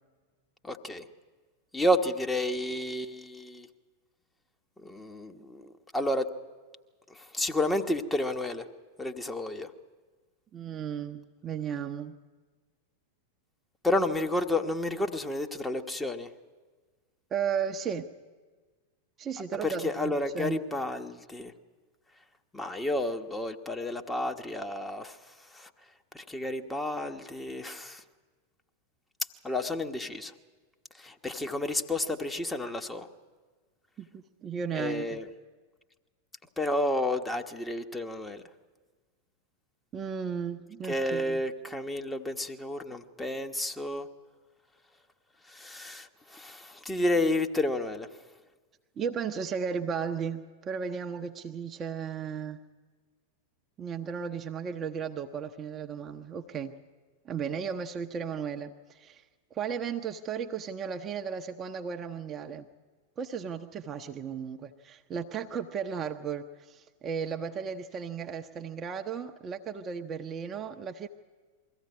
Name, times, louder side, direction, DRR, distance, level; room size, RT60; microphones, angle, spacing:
voice 1, 0.6-1.1 1.7-3.7 4.8-6.3 7.1-8.7 9.0-9.7 13.8-16.3 19.6-21.5 22.5-25.7 26.1-28.0 29.4-30.3 31.0-33.1 34.7-35.3 36.6-38.4 40.8-44.1 45.4-48.1, left 1 dB, 10° left, 5 dB, 1.3 m, -31 dB
voice 2, 10.5-12.2 17.3-18.1 19.2-20.6 34.0-35.2 39.9-41.4 49.0-52.6 53.8-56.8 57.2-59.2 59.5-62.7 63.2-71.1, right 7 dB, 25° right, 4 dB, 0.9 m, -35 dB
22.5 x 15.5 x 9.6 m, 1.4 s
figure-of-eight pair, 90°, 0 cm